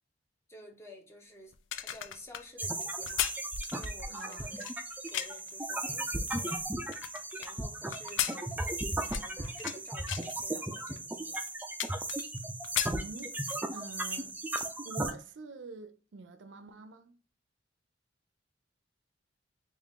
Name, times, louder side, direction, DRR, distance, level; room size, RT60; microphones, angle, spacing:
voice 1, 0.5-3.3 3.7-4.7 5.1-6.7 7.4-11.4, left 2 dB, 15° left, 0.8 m, -52 dB
sound 1, 1.5-5.5 6.1-7.5 7.9-9.8 10.1-10.4 11.0-11.1 11.3-12.4 12.6-13.6 14.0-14.2, left 11 dB, 70° left, 0.4 m, -36 dB
sound 2, 2.6-15.1, right 2 dB, 10° right, 0.4 m, -36 dB
voice 2, 4.1-4.6 12.9-13.3 13.7-14.4 14.8-17.2, right 3 dB, 70° right, 0.5 m, -46 dB
3.6 x 2.5 x 3.6 m
head